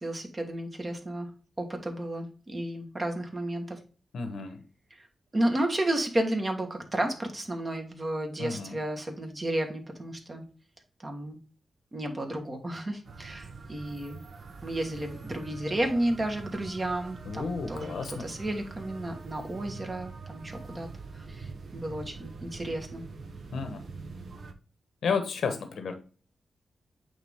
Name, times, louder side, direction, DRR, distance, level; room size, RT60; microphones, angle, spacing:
voice 1, 0.0-1.3 1.6-3.8 5.3-10.4 11.0-11.4 11.9-14.2 14.6-20.9 21.1-23.0, right 1 dB, 25° right, 3 dB, 1.5 m, -32 dB
voice 2, 4.1-4.6 8.4-8.8 17.2-18.2 23.5-23.8 25.0-26.0, left 5 dB, 80° left, 7 dB, 1.1 m, -32 dB
sound 1, 13.0-24.5, right 4 dB, 60° right, 1.1 m, -44 dB
8.6 x 3.6 x 3.6 m, 0.38 s
wide cardioid pair, 135°, 0 cm